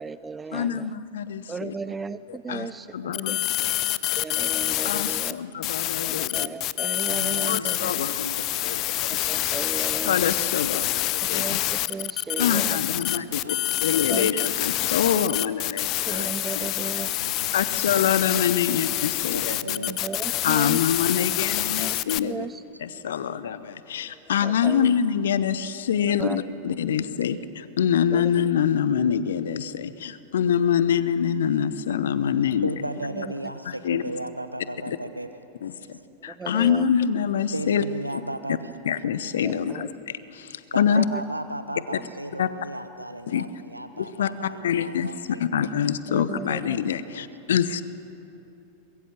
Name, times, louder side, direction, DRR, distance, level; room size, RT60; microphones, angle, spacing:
voice 1, 0.0-0.8 1.5-2.9 3.1-3.4 4.2-5.4 6.0-7.9 9.3-10.3 11.3-11.6 11.9-12.8 14.1-14.5 16.1-17.1 19.7-20.8 21.8-22.0 22.2-22.6 24.4-24.9 26.1-26.4 28.1-28.3 36.3-36.8 39.4-39.9 41.0-41.2 46.1-46.8, right 5 dB, 15° right, 15 dB, 0.4 m, -35 dB
voice 2, 0.5-1.7 2.3-3.7 4.8-6.5 7.4-8.2 8.6-9.3 10.0-11.6 12.4-13.5 13.8-16.3 16.5-16.7 17.5-19.6 20.4-22.5 22.8-32.7 33.8-34.0 34.9-35.0 35.6-35.7 36.2-37.8 38.8-41.0 42.4-42.5 43.3-43.4 44.0-44.3 44.6-45.1 45.4-47.8, left 8 dB, 60° left, 15 dB, 0.9 m, -25 dB
voice 3, 1.9-5.2 5.9-6.1 7.1-9.0 9.3-9.9 10.6-10.9 12.8-13.9 16.2-18.1 18.6-18.7 19.3-20.1 22.7-22.8 23.1-23.2 26.5-26.6 32.6-36.0 37.5-38.7 39.4-39.5 40.7-45.7 47.1-47.3, right 1 dB, 85° right, 11 dB, 0.7 m, -37 dB
sound 1, 3.1-5.3 5.6-22.2, left 17 dB, 40° left, 0.6 m, -27 dB
23.5 x 22.0 x 7.7 m, 2.9 s
figure-of-eight pair, 90°, 0 cm